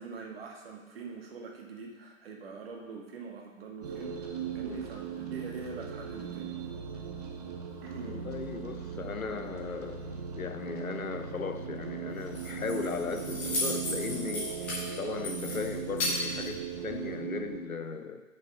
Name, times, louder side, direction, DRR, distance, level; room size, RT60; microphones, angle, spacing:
voice 1, 0.0-6.6 7.8-8.2, right 4 dB, 45° right, 1 dB, 1.6 m, -43 dB
sound 1, 3.8-17.6, right 7 dB, 30° right, 0.8 m, -38 dB
voice 2, 8.0-14.6 15.0-18.2, left 6 dB, 75° left, 8 dB, 0.9 m, -37 dB
Keys jangling, 12.1-17.1, left 2 dB, 5° left, 0.5 m, -36 dB
8.4 x 4.9 x 6.1 m, 1.3 s
figure-of-eight pair, 125°, 42 cm